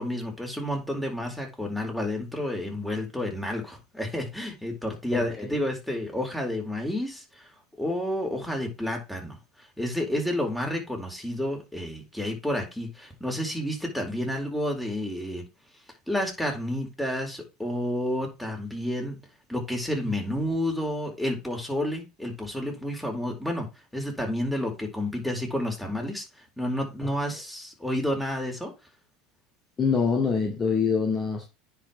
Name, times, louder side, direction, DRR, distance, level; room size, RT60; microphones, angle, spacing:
voice 1, 0.0-7.5 7.8-15.4 16.1-19.2 19.5-23.7 23.9-28.7, left 1 dB, 5° left, 1 dB, 4.3 m, -30 dB
voice 2, 5.1-5.6 27.0-27.1 29.8-31.4, left 5 dB, 30° left, 2 dB, 2.2 m, -25 dB
9.9 x 5.5 x 3.4 m, 0.26 s
hypercardioid pair, 80°, 0 cm